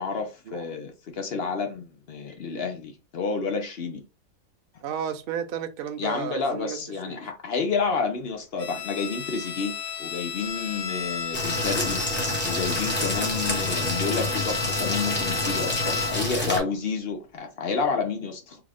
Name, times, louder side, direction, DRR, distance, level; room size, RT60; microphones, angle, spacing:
voice 1, 0.0-4.0 6.0-9.7 10.0-12.0 12.4-18.6, left 5 dB, 55° left, 0.7 m, -30 dB
voice 2, 4.8-6.8 7.1-7.2, right 8 dB, 75° right, 0.5 m, -32 dB
Bowed string instrument, 8.6-16.4, left 6 dB, 80° left, 1.6 m, -33 dB
sound 1, 10.4-10.5 11.0-11.2 11.5-14.6, left 1 dB, 25° right, 0.7 m, -42 dB
sound 2, 11.3-16.6, left 1 dB, 10° left, 1.1 m, -28 dB
3.4 x 2.5 x 3.3 m
omnidirectional pair, 1.7 m